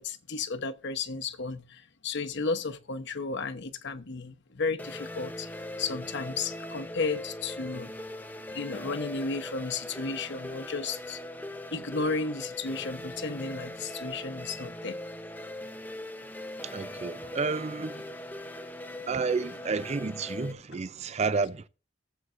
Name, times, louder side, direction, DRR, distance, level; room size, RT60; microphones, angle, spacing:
voice 1, 0.0-5.5 5.8-7.9 8.5-11.2 11.7-15.0 19.0-19.2, left 4 dB, 55° left, 1.0 m, -33 dB
sound 1, 4.8-20.5, left 1 dB, 10° left, 0.6 m, -40 dB
voice 2, 16.6-18.1 19.1-21.7, right 4 dB, 30° right, 0.4 m, -31 dB
18.5 x 8.1 x 2.5 m
head